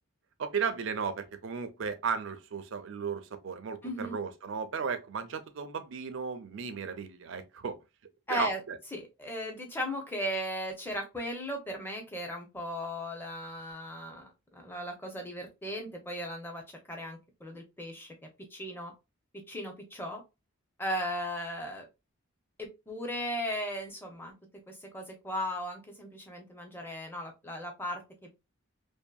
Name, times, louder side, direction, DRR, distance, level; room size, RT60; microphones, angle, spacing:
voice 1, 0.4-7.8 8.3-8.8, right 6 dB, 60° right, 0.4 m, -35 dB
voice 2, 3.8-4.2 8.3-8.6 8.9-18.1 18.5-18.9 19.3-20.2 20.8-21.9 22.6-24.3 24.7-28.3, equal, 10° left, 0.5 m, -37 dB
2.6 x 2.5 x 2.2 m
head